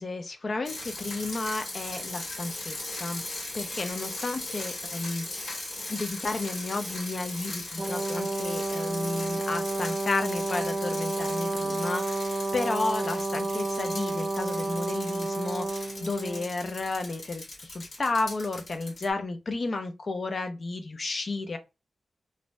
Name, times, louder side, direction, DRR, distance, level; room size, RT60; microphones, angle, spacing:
voice 1, 0.0-3.2 3.5-5.2 5.9-21.6, left 3 dB, 45° left, 0.4 m, -32 dB
sound 1, 0.6-19.1, left 2 dB, 70° left, 1.4 m, -38 dB
Brass instrument, 7.8-16.5, right 2 dB, 35° right, 0.3 m, -31 dB
2.6 x 2.0 x 3.0 m
wide cardioid pair, 125°, 0 cm